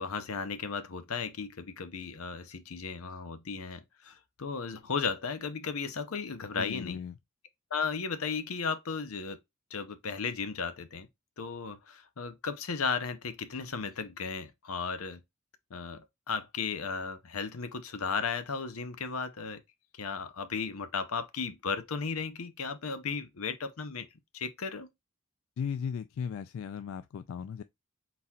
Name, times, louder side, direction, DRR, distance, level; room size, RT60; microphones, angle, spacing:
voice 1, 0.0-7.0 7.7-9.4 9.7-11.1 11.4-15.2 15.7-19.6 19.9-24.1 24.3-24.9, left 5 dB, 90° left, 0.7 m, -35 dB
voice 2, 6.5-7.1 25.6-27.6, left 7 dB, 65° left, 0.3 m, -36 dB
4.2 x 4.0 x 2.3 m
head